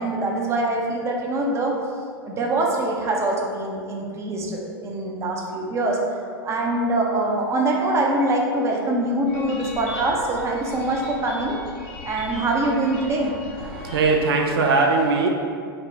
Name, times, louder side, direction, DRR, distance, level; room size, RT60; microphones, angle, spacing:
voice 1, 0.0-1.8 2.3-11.6 12.0-13.3, right 2 dB, 20° right, 0 dB, 0.6 m, -24 dB
sound 1, 9.3-14.3, left 2 dB, 50° left, 1.0 m, -38 dB
voice 2, 13.7-15.3, right 3 dB, 70° right, 1 dB, 0.4 m, -20 dB
4.2 x 2.1 x 4.1 m, 2.2 s
hypercardioid pair, 100°, 13 cm